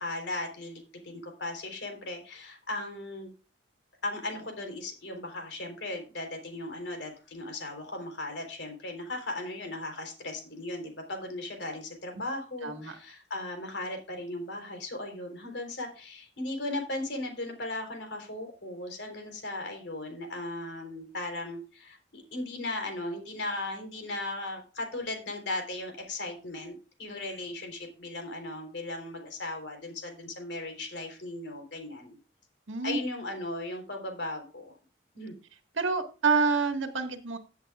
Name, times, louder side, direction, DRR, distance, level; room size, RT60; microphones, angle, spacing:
voice 1, 0.0-3.3 4.0-32.2 32.8-34.8 35.1-35.3, left 2 dB, 65° left, 4 dB, 3.8 m, -37 dB
voice 2, 12.6-13.0 32.7-33.0 35.8-37.4, right 4 dB, 85° right, 6 dB, 1.8 m, -27 dB
15.5 x 8.3 x 2.4 m, 0.34 s
head